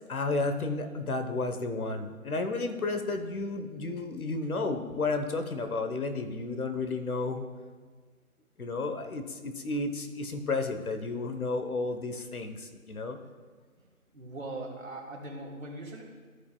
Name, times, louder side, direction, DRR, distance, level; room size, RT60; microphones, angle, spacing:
voice 1, 0.1-7.4 8.6-13.2, left 3 dB, 75° left, 7 dB, 1.1 m, -32 dB
voice 2, 14.1-16.0, right 2 dB, 65° right, -2 dB, 2.4 m, -40 dB
15.0 x 5.4 x 2.3 m, 1.5 s
figure-of-eight pair, 160°, 43 cm